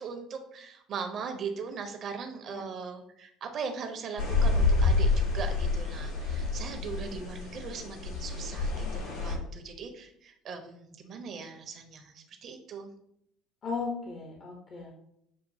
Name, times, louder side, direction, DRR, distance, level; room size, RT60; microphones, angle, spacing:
voice 1, 0.0-12.9, right 5 dB, 50° right, 4 dB, 0.8 m, -39 dB
sound 1, 4.2-9.4, left 3 dB, 75° left, 1.2 m, -28 dB
voice 2, 13.6-14.9, left 4 dB, 45° left, -1 dB, 0.9 m, -36 dB
7.3 x 2.6 x 2.7 m, 0.74 s
hypercardioid pair, 65°, 0 cm